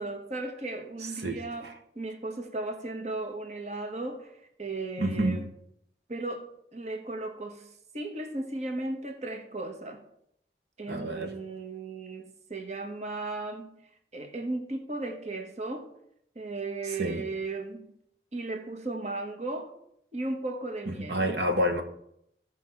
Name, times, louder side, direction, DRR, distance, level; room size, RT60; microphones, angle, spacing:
voice 1, 0.0-5.4 6.1-10.0 10.8-13.8 14.1-15.9 16.3-17.9 18.3-19.7 20.1-21.3, right 2 dB, 40° right, 1.3 m, -36 dB
voice 2, 1.0-1.7 5.0-5.5 10.9-11.3 16.9-17.2 21.0-21.8, equal, 75° right, 1.4 m, -29 dB
15.0 x 5.1 x 5.9 m
head